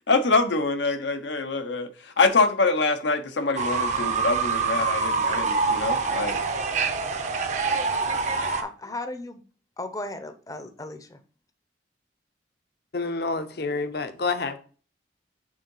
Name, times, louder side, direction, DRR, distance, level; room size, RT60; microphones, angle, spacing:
voice 1, 0.1-6.4, left 3 dB, 90° left, 0.9 m, -25 dB
Fowl / Bird, 3.6-8.6, right 4 dB, 40° right, 0.7 m, -25 dB
voice 2, 8.5-9.4 9.8-11.2, left 2 dB, 20° left, 0.6 m, -36 dB
voice 3, 12.9-14.6, left 3 dB, 60° left, 0.7 m, -29 dB
6.5 x 3.7 x 5.4 m
head